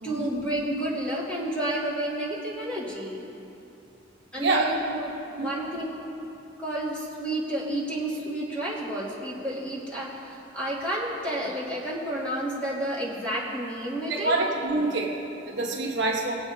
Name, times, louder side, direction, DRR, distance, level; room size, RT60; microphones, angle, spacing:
voice 1, 0.0-3.2 4.3-5.1 5.4-6.2 6.6-14.6, right 1 dB, 5° left, -9 dB, 2.6 m, -31 dB
voice 2, 4.4-4.7 5.4-5.5 14.1-16.4, right 2 dB, 65° right, -1 dB, 1.1 m, -26 dB
21.5 x 8.1 x 2.8 m, 2.9 s
head